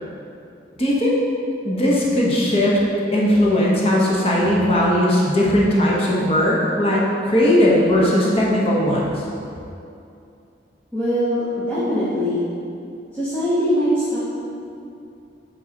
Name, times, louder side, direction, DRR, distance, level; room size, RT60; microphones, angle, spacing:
voice 1, 0.8-1.2 1.6-2.8 3.1-9.1, left 1 dB, 35° left, -5 dB, 1.0 m, -18 dB
voice 2, 10.9-12.4 13.1-14.2, equal, 10° left, -13 dB, 1.1 m, -21 dB
7.9 x 3.9 x 4.0 m, 2.6 s
head